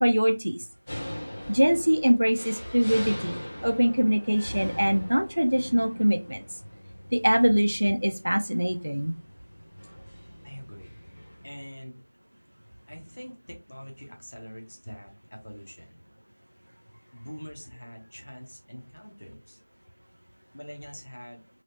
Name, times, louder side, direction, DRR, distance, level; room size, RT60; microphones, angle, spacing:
voice 1, 0.0-0.6 1.5-6.4 7.1-9.1, equal, 65° right, 6 dB, 0.5 m, -23 dB
sound 1, 0.9-11.6, equal, 10° left, 0.4 m, -41 dB
voice 2, 10.4-11.0 11.4-12.0 12.9-16.0 16.6-19.6 20.5-21.4, equal, 40° left, 2 dB, 0.8 m, -44 dB
3.2 x 2.8 x 2.6 m, 0.28 s
figure-of-eight pair, 180°, 0 cm